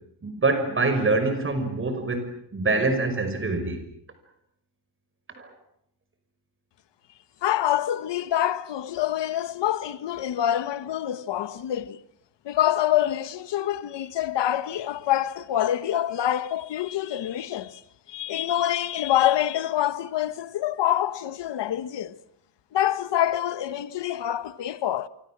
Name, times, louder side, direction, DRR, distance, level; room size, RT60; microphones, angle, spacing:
voice 1, 0.2-3.8 5.4-5.5, right 3 dB, 30° right, 5.6 m, -25 dB
voice 2, 7.4-12.0 12.4-17.8 18.1-22.1 22.7-25.1, left 11 dB, 85° left, 1.4 m, -26 dB
28.5 x 24.5 x 7.5 m
wide cardioid pair, 150°, 41 cm